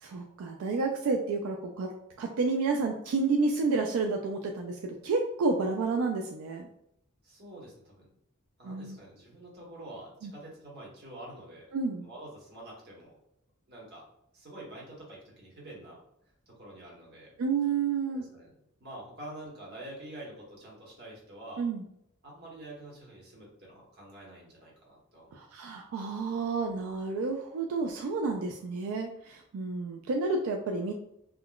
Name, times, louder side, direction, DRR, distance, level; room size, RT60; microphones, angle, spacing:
voice 1, 0.0-1.9 2.2-6.7 8.6-9.0 10.2-10.3 11.7-12.1 17.4-18.2 21.6-21.8 25.3-30.9, right 4 dB, 85° right, 2 dB, 0.3 m, -30 dB
voice 2, 7.2-8.1 8.6-11.7 12.0-13.2 13.7-14.0 14.3-16.0 16.5-17.3 18.1-18.5 18.8-21.7 22.2-25.6, right 1 dB, 50° right, -4 dB, 1.0 m, -47 dB
3.6 x 2.1 x 2.3 m, 0.78 s
head